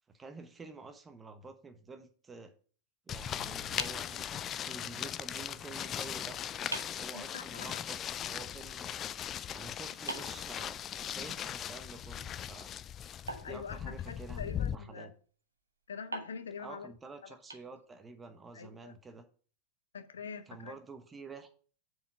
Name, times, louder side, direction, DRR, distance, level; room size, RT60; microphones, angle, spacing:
voice 1, 0.1-2.5 3.1-6.4 7.0-8.0 8.2-9.0 9.5-12.7 13.4-15.1 16.6-19.2 20.5-21.5, right 4 dB, 15° right, 1.1 m, -49 dB
sound 1, 3.1-14.7, left 9 dB, 30° left, 0.3 m, -39 dB
sound 2, 3.8-4.9 6.1-6.2 6.7-7.1 10.1-11.3 13.3-14.4 16.1-18.2, right 2 dB, 80° right, 1.1 m, -45 dB
voice 2, 7.1-7.7 13.4-15.2 15.9-16.9 17.2-17.3 18.5-18.9 19.9-20.8, left 6 dB, 65° left, 0.7 m, -44 dB
7.1 x 4.7 x 5.6 m
figure-of-eight pair, 90°, 0 cm